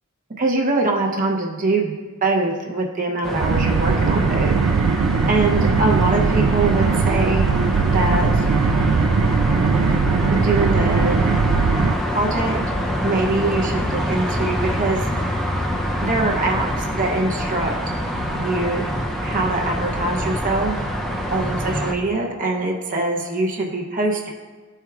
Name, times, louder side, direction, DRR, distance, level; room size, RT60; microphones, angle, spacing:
voice 1, 0.4-1.9 2.2-4.6 5.3-7.5 7.8-8.5 10.3-11.3 12.1-15.0 16.0-17.9 18.3-18.8 19.2-20.8 21.3-24.3, right 2 dB, 35° right, 0 dB, 0.8 m, -23 dB
sound 1, 3.2-21.9, equal, ahead, 0.5 m, -25 dB
sound 2, 3.4-11.9, right 5 dB, 65° right, 0.4 m, -19 dB
13.0 x 4.5 x 2.4 m, 1.3 s
head